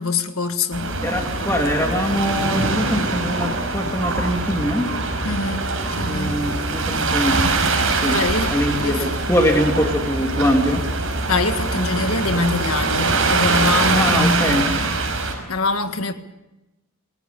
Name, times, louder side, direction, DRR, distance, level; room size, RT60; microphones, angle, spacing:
voice 1, 0.0-0.9 5.2-5.6 5.9-6.6 8.1-8.5 8.8-9.2 11.3-14.5 15.4-16.1, left 3 dB, 75° left, 1.7 m, -24 dB
sound 1, 0.7-15.3, right 3 dB, 70° right, 5.6 m, -23 dB
voice 2, 1.0-4.9 6.1-7.4 8.0-8.2 8.5-10.8 13.9-14.7, equal, 10° left, 2.7 m, -22 dB
27.0 x 18.5 x 6.9 m
head